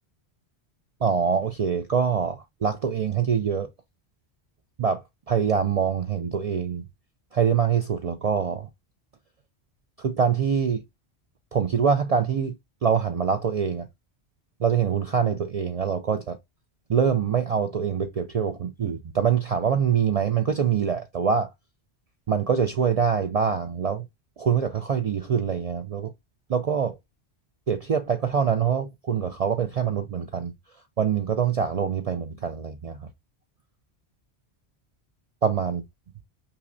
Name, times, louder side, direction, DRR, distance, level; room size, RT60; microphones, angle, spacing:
voice 1, 1.0-3.7 4.8-6.8 7.3-8.7 10.0-10.8 11.5-12.5 12.8-13.9 14.6-16.4 16.9-21.5 22.3-24.1 24.4-26.1 26.5-27.0 27.7-30.5 31.0-33.1 35.4-35.8, right 7 dB, 55° right, 0.4 m, -24 dB
5.5 x 2.0 x 2.6 m
omnidirectional pair, 1.1 m